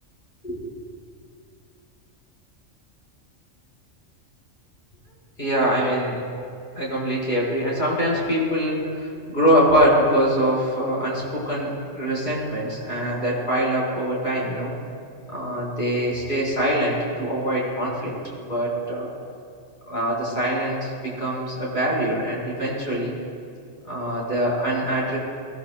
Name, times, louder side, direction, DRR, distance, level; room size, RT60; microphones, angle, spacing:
voice 1, 5.4-6.2 6.7-14.7 15.3-19.1 19.9-23.2 23.8-25.2, equal, 40° left, -6 dB, 4.3 m, -23 dB
19.5 x 17.0 x 2.3 m, 2.3 s
omnidirectional pair, 1.3 m